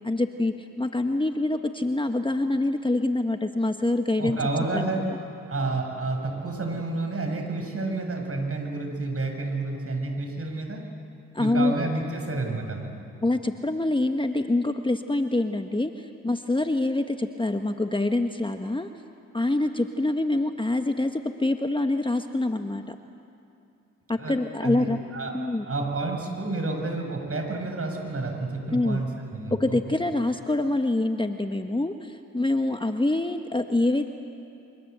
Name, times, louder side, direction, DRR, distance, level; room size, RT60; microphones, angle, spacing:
voice 1, 0.0-4.4 4.7-5.0 11.3-11.8 13.2-18.9 19.3-22.9 24.1-25.0 25.3-25.7 28.7-29.0 29.6-34.1, left 2 dB, 15° left, 6 dB, 1.4 m, -25 dB
voice 2, 4.2-5.1 5.5-10.8 11.4-12.9 24.2-24.4 24.6-25.4 25.6-29.8, right 3 dB, 40° right, 3 dB, 6.9 m, -30 dB
29.0 x 24.0 x 8.2 m, 2.6 s
hypercardioid pair, 45°, 33 cm